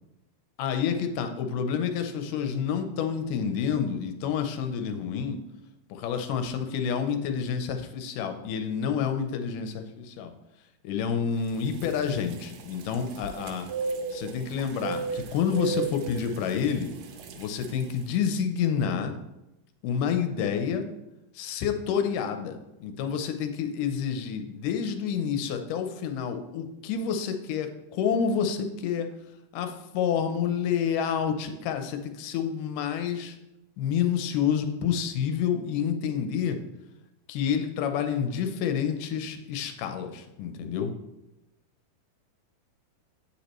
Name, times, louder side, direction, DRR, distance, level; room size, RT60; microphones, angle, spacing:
voice 1, 0.6-5.4 5.9-10.3 10.8-13.7 14.1-16.9 17.4-19.1 19.8-20.9 21.4-29.1 29.5-33.4 33.8-36.6 37.3-40.9, left 7 dB, 75° left, 6 dB, 2.1 m, -28 dB
sound 1, 11.4-18.1, right 5 dB, 80° right, 2.2 m, -36 dB
8.5 x 8.3 x 3.0 m, 0.93 s
omnidirectional pair, 4.2 m